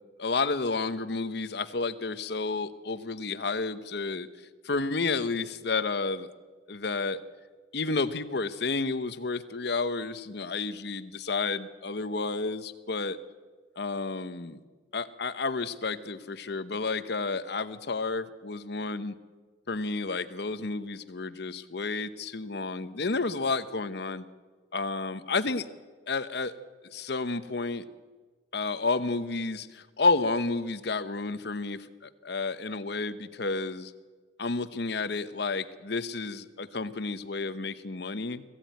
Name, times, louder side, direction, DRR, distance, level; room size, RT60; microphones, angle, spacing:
voice 1, 0.2-6.3 6.7-7.2 7.7-13.2 13.8-14.6 14.9-19.1 19.7-24.2 24.7-25.7 26.1-26.6 26.8-27.8 28.5-33.9 34.4-38.4, left 3 dB, 60° left, 13 dB, 0.9 m, -31 dB
20.5 x 15.5 x 9.3 m, 1.4 s
head